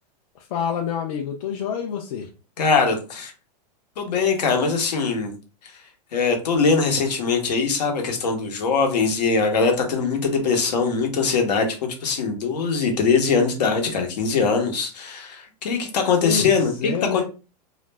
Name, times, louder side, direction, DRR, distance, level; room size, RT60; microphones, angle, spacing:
voice 1, 0.5-2.3 16.2-17.2, left 7 dB, 55° left, 1 dB, 0.5 m, -27 dB
voice 2, 2.6-3.3 4.0-5.3 5.6-5.8 6.1-17.2, left 5 dB, 75° left, 3 dB, 0.9 m, -22 dB
2.4 x 2.1 x 3.2 m, 0.33 s
supercardioid pair, 145°, 21 cm